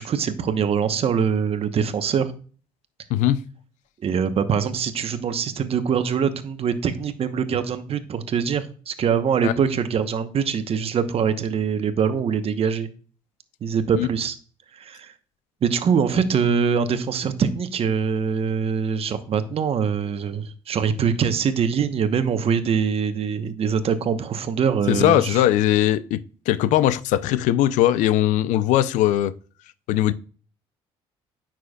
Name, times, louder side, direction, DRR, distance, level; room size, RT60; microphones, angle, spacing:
voice 1, 0.0-2.3 4.0-12.9 13.6-14.4 14.7-15.1 15.6-25.4, right 7 dB, 50° right, 1.0 m, -23 dB
voice 2, 3.1-3.5 9.4-9.5 13.9-14.1 24.9-26.2 26.5-29.3 29.9-30.1, left 13 dB, 80° left, 0.5 m, -20 dB
9.6 x 6.0 x 2.3 m
supercardioid pair, 75°, 13 cm